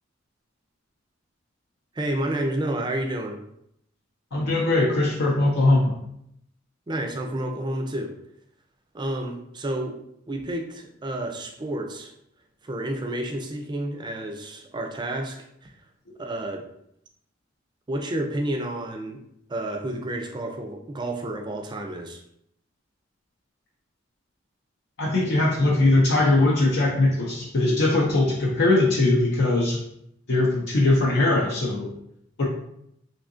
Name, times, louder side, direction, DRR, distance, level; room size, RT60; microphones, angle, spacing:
voice 1, 1.9-3.4 6.9-8.1 8.9-10.0 10.3-12.1 12.6-15.7 16.2-16.7 17.9-19.2 19.5-22.2, right 1 dB, 25° right, 3 dB, 0.4 m, -30 dB
voice 2, 4.3-5.9 25.0-29.8 30.3-31.9 32.4-32.5, left 2 dB, 65° left, -4 dB, 0.6 m, -21 dB
3.6 x 2.7 x 2.5 m, 0.74 s
head